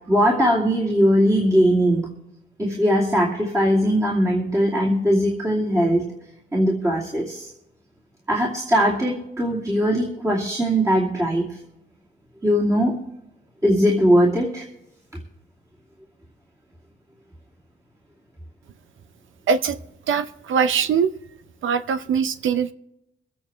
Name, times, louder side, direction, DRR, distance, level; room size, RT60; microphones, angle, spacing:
voice 1, 0.1-2.1 2.6-6.0 6.5-7.5 8.3-11.5 12.4-13.0 13.6-14.7, equal, 15° right, -5 dB, 2.6 m, -20 dB
voice 2, 19.5-19.8 20.1-21.1 21.6-22.7, right 6 dB, 85° right, 12 dB, 0.7 m, -22 dB
23.5 x 8.7 x 3.4 m, 0.85 s
wide cardioid pair, 135°, 20 cm